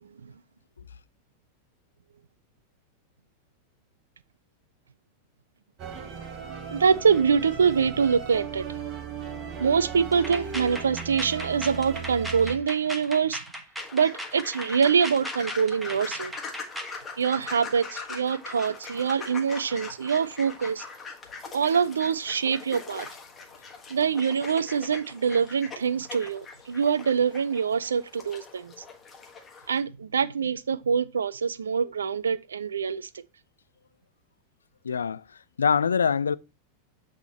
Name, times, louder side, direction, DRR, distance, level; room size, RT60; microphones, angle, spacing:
voice 1, 0.0-0.3 6.7-8.9 9.6-13.4 13.9-16.3 17.2-20.9 21.5-23.1 23.9-28.7 29.7-33.1, right 6 dB, 70° right, 0.4 m, -25 dB
sound 1, 5.8-12.6, right 6 dB, 35° right, 1.1 m, -37 dB
sound 2, 10.1-17.0, equal, 5° right, 1.1 m, -37 dB
sound 3, 13.8-29.8, left 4 dB, 20° left, 1.4 m, -42 dB
voice 2, 34.8-35.2 35.6-36.3, left 6 dB, 70° left, 0.3 m, -23 dB
8.0 x 3.5 x 4.1 m
figure-of-eight pair, 90°, 0 cm